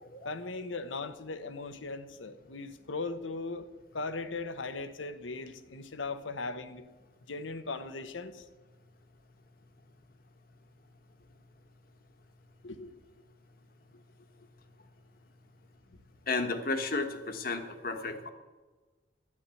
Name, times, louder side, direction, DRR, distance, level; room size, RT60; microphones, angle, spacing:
voice 1, 0.2-3.7 3.9-6.9 7.2-8.4 12.6-12.9 13.9-14.0, left 3 dB, 85° left, 11 dB, 1.0 m, -38 dB
voice 2, 16.3-18.3, left 3 dB, 50° left, 7 dB, 1.3 m, -32 dB
12.0 x 10.5 x 7.7 m, 1.3 s
head